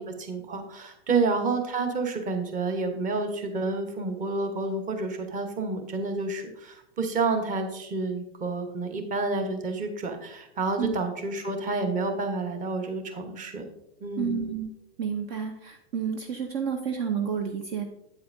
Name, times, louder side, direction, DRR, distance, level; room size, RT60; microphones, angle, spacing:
voice 1, 0.0-13.6 14.0-14.5, right 3 dB, 25° right, 6 dB, 1.1 m, -29 dB
voice 2, 14.2-14.7 15.0-17.8, right 7 dB, 45° right, 6 dB, 0.8 m, -30 dB
8.5 x 8.3 x 2.6 m, 0.82 s
hypercardioid pair, 115°, 33 cm